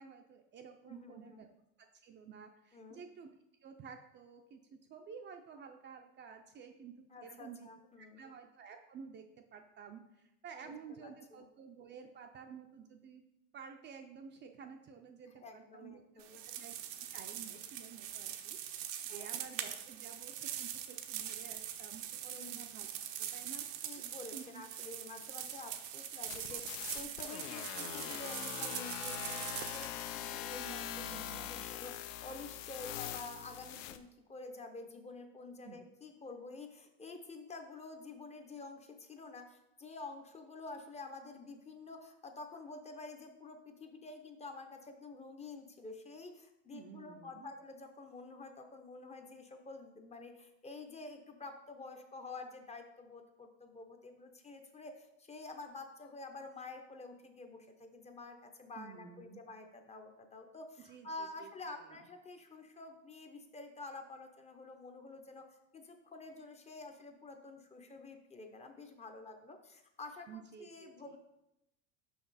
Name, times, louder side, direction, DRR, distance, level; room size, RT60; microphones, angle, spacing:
voice 1, 0.0-1.5 1.8-3.3 3.6-7.7 8.0-13.2 13.5-16.0 16.4-16.7 17.1-22.9 23.2-23.7 24.3-24.6 30.6-31.7 35.6-35.8 46.7-47.5 58.8-59.4 60.8-62.0 70.3-71.2, right 6 dB, 30° right, 4 dB, 0.4 m, -52 dB
voice 2, 0.9-1.4 2.7-3.0 7.1-8.3 10.6-10.7 11.0-11.5 15.4-16.4 19.1-19.4 22.3-22.7 23.8-30.8 31.1-65.5 65.7-71.2, left 3 dB, 20° left, 5 dB, 0.6 m, -49 dB
sound 1, 16.2-29.9, right 10 dB, 80° right, 0.8 m, -43 dB
sound 2, 26.3-34.0, left 11 dB, 85° left, 0.6 m, -42 dB
5.9 x 5.7 x 4.0 m, 0.88 s
supercardioid pair, 130°, 38 cm